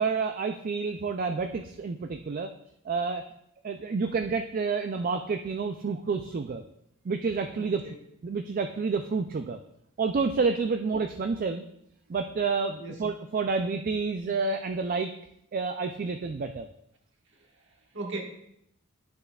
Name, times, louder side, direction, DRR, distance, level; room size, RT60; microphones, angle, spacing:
voice 1, 0.0-2.5 2.9-3.2 3.6-6.6 7.1-7.8 8.2-9.6 10.0-11.7 12.1-15.1 15.5-16.7, right 4 dB, 40° right, 6 dB, 0.3 m, -29 dB
voice 2, 7.6-8.0 12.8-13.0 17.3-18.2, right 2 dB, 60° right, 0 dB, 1.6 m, -39 dB
11.5 x 6.6 x 2.3 m, 0.76 s
head